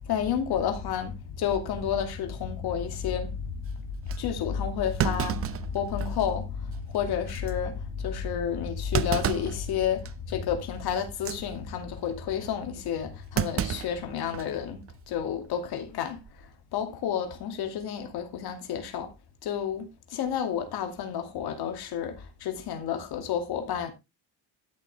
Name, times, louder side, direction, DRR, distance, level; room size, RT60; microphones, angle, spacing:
voice 1, 0.0-19.1 19.4-23.9, left 8 dB, 75° left, 2.5 m, -31 dB
Thump thud, 3.5-3.6 4.1-4.2 5.0-6.3 6.7-6.8 7.3-7.5 8.9-9.6 10.1-10.3 11.1-11.4 13.4-14.6 14.9-15.0 16.1-16.5, right 10 dB, 35° right, 0.6 m, -30 dB
12.5 x 7.6 x 3.4 m
cardioid pair, 175°, 39 cm